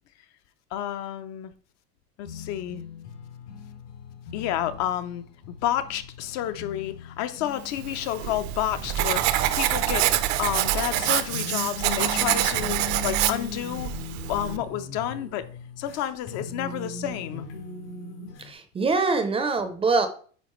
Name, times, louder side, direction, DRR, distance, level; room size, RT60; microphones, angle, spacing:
voice 1, 0.7-1.5 2.2-2.8 4.3-5.2 5.6-10.1 10.4-13.9 14.3-15.4 15.8-17.4, left 11 dB, 50° left, 0.7 m, -30 dB
sound 1, 2.2-18.5, left 4 dB, 85° left, 2.5 m, -40 dB
Writing, 7.8-14.6, right 13 dB, 60° right, 0.7 m, -26 dB
voice 2, 18.4-20.1, right 4 dB, 15° right, 0.6 m, -24 dB
9.4 x 4.0 x 3.1 m
supercardioid pair, 140°, 33 cm